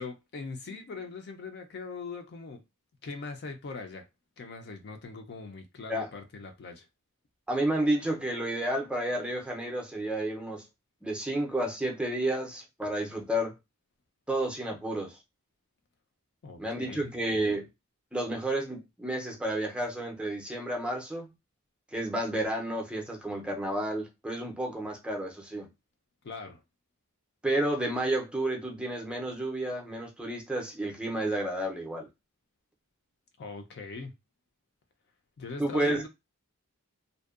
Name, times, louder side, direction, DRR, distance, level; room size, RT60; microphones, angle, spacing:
voice 1, 0.0-2.6 3.0-4.1 4.4-6.9 16.4-17.1 26.2-26.6 33.4-34.1 35.4-36.1, left 3 dB, 50° left, 0.4 m, -41 dB
voice 2, 7.5-10.6 11.0-13.5 14.3-15.2 16.6-17.7 18.1-21.3 21.9-25.7 27.4-32.1 35.6-36.0, right 1 dB, 5° right, 0.5 m, -31 dB
2.5 x 2.1 x 2.4 m
head